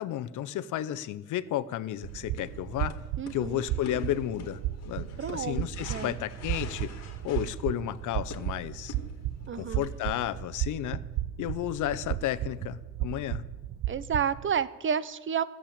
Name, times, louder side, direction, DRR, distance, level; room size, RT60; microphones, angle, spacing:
voice 1, 0.0-3.0 3.3-4.6 4.8-6.9 7.2-8.9 9.5-11.0 11.4-13.5, left 12 dB, 80° left, 15 dB, 0.7 m, -32 dB
sound 1, 2.0-14.5, right 13 dB, 85° right, 0.6 m, -35 dB
sound 2, 2.1-10.1, left 5 dB, 60° left, 2.0 m, -48 dB
voice 2, 3.2-3.6 5.2-6.2 9.5-9.8 13.9-15.4, right 7 dB, 40° right, 16 dB, 0.7 m, -31 dB
13.5 x 7.5 x 8.6 m, 1.2 s
cardioid pair, 90°, 30 cm